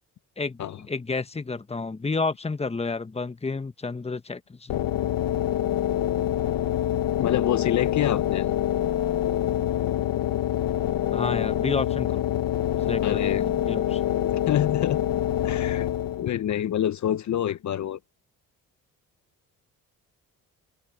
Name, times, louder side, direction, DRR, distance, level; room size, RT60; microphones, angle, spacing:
voice 1, 0.9-4.8 11.1-12.3 12.9-14.0, left 3 dB, 15° left, 1.3 m, -30 dB
sound 1, 4.7-16.4, left 12 dB, 75° left, 1.2 m, -26 dB
voice 2, 7.2-8.5 13.0-13.4 14.5-15.0 15.4-15.9 16.2-18.0, left 11 dB, 55° left, 0.8 m, -26 dB
open air
cardioid pair, 85°, 35 cm